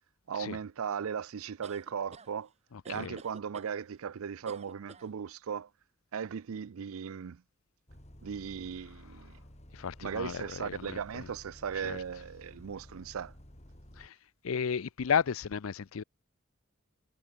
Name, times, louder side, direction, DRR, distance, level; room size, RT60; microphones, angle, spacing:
voice 1, 0.3-2.5 2.9-5.7 6.1-7.4 8.2-9.4 10.0-13.3, right 7 dB, 85° right, 0.5 m, -37 dB
sound 1, 1.6-2.3 2.8-3.7 4.5-5.1, right 3 dB, 30° right, 1.3 m, -50 dB
Bus, 7.9-14.1, equal, 35° left, 6.0 m, -53 dB
voice 2, 9.7-11.3 11.8-12.0 14.0-14.1 14.4-16.0, left 6 dB, 80° left, 0.5 m, -33 dB
head